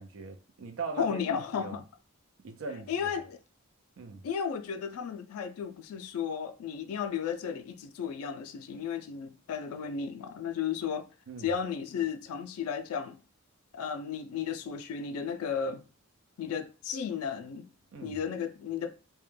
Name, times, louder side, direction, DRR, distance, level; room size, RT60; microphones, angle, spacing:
voice 1, 0.0-1.2 1.5-1.8 2.4-3.2 4.0-4.3 11.3-11.5 17.9-18.2, right 4 dB, 65° right, 0.4 m, -40 dB
voice 2, 1.0-1.8 2.9-3.4 4.2-11.1 11.4-13.2 13.7-15.8 16.4-17.7 18.0-18.9, left 7 dB, 80° left, 0.3 m, -34 dB
2.2 x 2.1 x 3.1 m
head